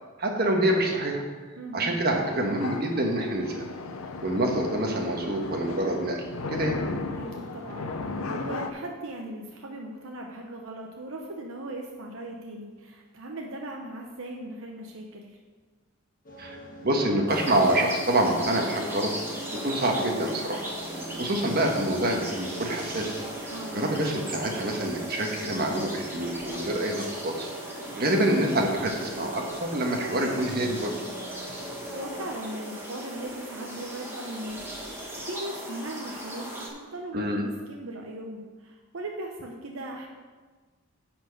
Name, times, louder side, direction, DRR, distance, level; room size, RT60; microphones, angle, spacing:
voice 1, 0.2-1.2 1.7-3.6 4.2-6.8 16.4-19.1 19.5-20.7 21.2-23.1 23.4-27.5 27.9-30.9 37.1-37.4, right 1 dB, 45° right, 1 dB, 1.3 m, -26 dB
voice 2, 1.6-1.9 7.1-15.4 23.5-23.8 31.9-40.1, right 1 dB, 75° right, 0 dB, 0.8 m, -38 dB
sound 1, 2.1-8.7, left 3 dB, 85° left, 0.7 m, -36 dB
sound 2, 16.2-32.3, equal, 40° left, 1.6 m, -43 dB
sound 3, 17.3-36.7, right 1 dB, 10° right, 1.4 m, -38 dB
10.5 x 4.5 x 6.5 m, 1.4 s
head